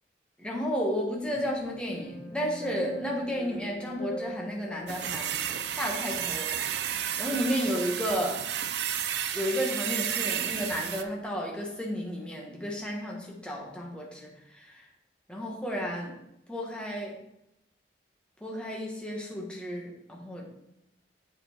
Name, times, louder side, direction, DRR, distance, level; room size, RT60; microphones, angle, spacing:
voice 1, 0.4-5.3 5.8-6.5 6.9-8.4 9.3-14.9 15.3-16.2 16.5-17.2 18.4-20.4, equal, 5° left, -2 dB, 1.3 m, -32 dB
sound 1, 1.3-6.8 7.1-7.3, right 1 dB, 80° left, 2.5 m, -43 dB
sound 2, 4.9-11.0, right 9 dB, 70° right, 0.5 m, -32 dB
7.8 x 4.4 x 4.4 m, 0.84 s
head